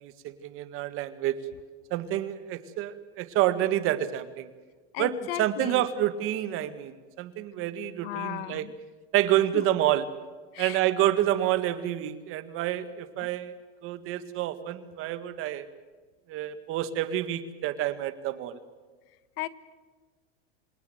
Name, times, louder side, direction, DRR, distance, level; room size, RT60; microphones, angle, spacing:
voice 1, 0.0-1.4 1.9-4.5 5.0-5.1 5.4-8.6 9.1-10.1 10.6-13.5 13.8-15.7 16.3-18.6, right 13 dB, 45° right, 12 dB, 1.8 m, -28 dB
voice 2, 4.9-5.8 8.0-8.7 9.5-9.6 10.5-10.8 19.4-19.5, left 15 dB, 70° left, 15 dB, 1.4 m, -35 dB
27.0 x 18.0 x 7.9 m, 1.4 s
supercardioid pair, 140°, 31 cm